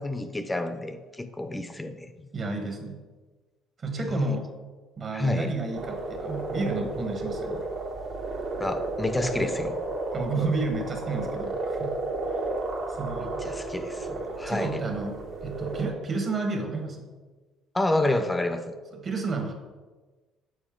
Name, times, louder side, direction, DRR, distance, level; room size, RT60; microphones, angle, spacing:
voice 1, 0.0-2.3 4.0-4.4 5.1-5.5 8.6-9.8 13.4-14.8 17.7-18.8, left 2 dB, 10° left, 9 dB, 0.6 m, -29 dB
voice 2, 2.3-3.0 3.8-4.5 5.0-7.6 10.1-11.9 12.9-13.4 14.4-17.1 19.0-19.5, right 3 dB, 40° right, 3 dB, 1.3 m, -31 dB
sound 1, 5.7-15.9, right 2 dB, 65° right, 1.3 m, -33 dB
7.2 x 4.2 x 3.7 m, 1.3 s
supercardioid pair, 90°, 0 cm